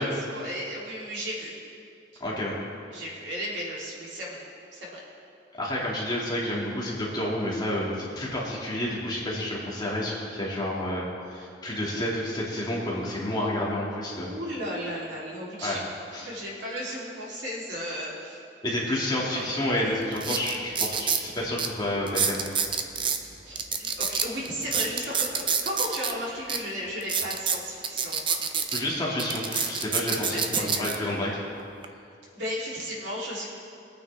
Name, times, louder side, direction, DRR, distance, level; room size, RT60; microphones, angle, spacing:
voice 1, 0.0-1.5 2.9-4.4 4.7-5.0 14.2-15.8 16.2-18.4 19.3-19.5 23.4-28.4 30.3-30.9 32.3-33.5, equal, 70° right, -5 dB, 3.4 m, -34 dB
voice 2, 2.2-2.5 5.6-14.3 15.6-15.8 16.1-16.3 18.6-22.5 28.7-31.3, left 1 dB, 25° left, -5 dB, 2.5 m, -29 dB
sound 1, 19.5-19.6 20.1-21.2 21.6-21.7 22.1-23.2 23.6-26.1 26.5-26.6 27.0-28.8 29.2-31.0 31.6-31.9, right 6 dB, 30° right, 0.7 m, -27 dB
22.0 x 9.3 x 3.5 m, 2.5 s
head